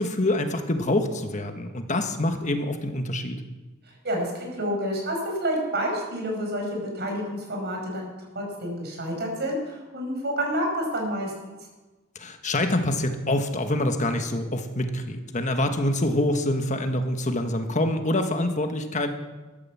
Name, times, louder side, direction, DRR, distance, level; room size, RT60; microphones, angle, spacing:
voice 1, 0.0-3.4 12.1-19.1, left 1 dB, 35° left, 6 dB, 1.4 m, -26 dB
voice 2, 4.0-8.1 8.3-11.5, equal, 55° right, 1 dB, 5.1 m, -29 dB
13.5 x 10.5 x 7.3 m, 1.2 s
head